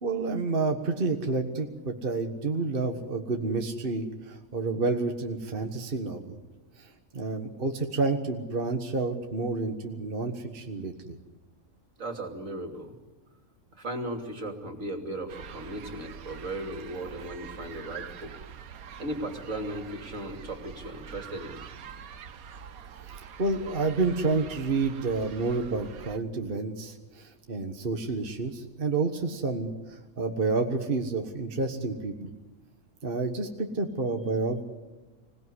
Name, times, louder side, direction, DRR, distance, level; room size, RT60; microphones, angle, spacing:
voice 1, 0.0-6.4 6.8-11.2 23.0-32.3 33.0-34.6, right 3 dB, 40° right, 4 dB, 1.6 m, -29 dB
voice 2, 12.0-12.9 13.7-18.3 19.0-21.6, right 1 dB, 65° right, 4 dB, 3.2 m, -36 dB
sound 1, 15.3-26.2, right 7 dB, 85° right, 1.5 m, -45 dB
25.5 x 18.0 x 9.9 m, 1.2 s
omnidirectional pair, 1.5 m